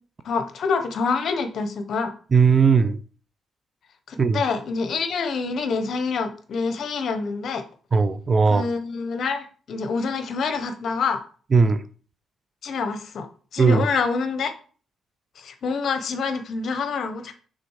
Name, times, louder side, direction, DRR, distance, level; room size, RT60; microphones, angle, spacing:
voice 1, 0.2-2.1 4.1-7.6 8.5-11.2 12.6-13.3 13.5-14.5 15.4-17.3, left 5 dB, 60° left, 1.0 m, -26 dB
voice 2, 2.3-3.0 4.2-4.4 7.9-8.6 11.5-11.8 13.6-13.9, right 5 dB, 35° right, 0.6 m, -18 dB
6.0 x 3.7 x 4.8 m
cardioid pair, 90°, 0 cm